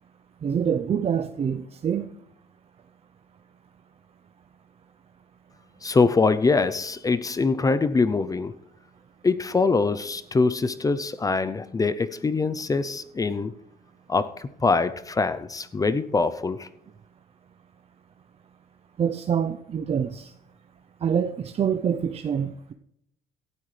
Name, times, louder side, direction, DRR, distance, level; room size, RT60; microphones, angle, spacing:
voice 1, 0.4-2.1 19.0-20.3 21.0-22.7, right 7 dB, 35° right, 0.7 m, -26 dB
voice 2, 5.8-8.5 9.2-13.5 14.1-16.7, left 4 dB, 20° left, 0.6 m, -23 dB
16.5 x 12.5 x 3.3 m
cardioid pair, 110°, 17 cm